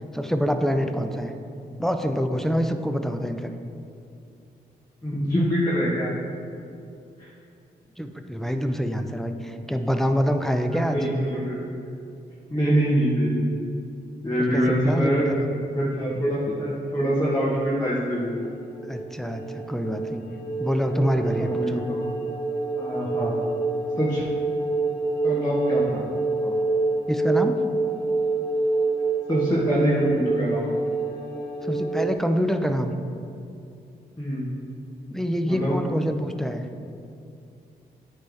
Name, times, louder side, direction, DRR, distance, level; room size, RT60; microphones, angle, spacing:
voice 1, 0.1-1.3 1.8-3.5 8.0-11.0 14.4-15.5 18.9-20.2 20.6-21.8 27.1-27.7 31.6-32.9 35.1-36.7, equal, ahead, 6 dB, 0.5 m, -26 dB
voice 2, 5.0-6.1 7.2-7.3 10.7-11.6 12.5-13.5 14.2-15.3 15.7-18.3 21.4-22.1 22.8-23.3 24.0-24.2 25.2-26.0 26.4-26.5 29.3-30.7 34.2-34.4 35.4-35.7, equal, 20° left, -8 dB, 1.3 m, -24 dB
sound 1, 18.1-32.2, right 3 dB, 80° left, 0.9 m, -27 dB
9.7 x 3.3 x 3.5 m, 2.6 s
supercardioid pair, 55°, 18 cm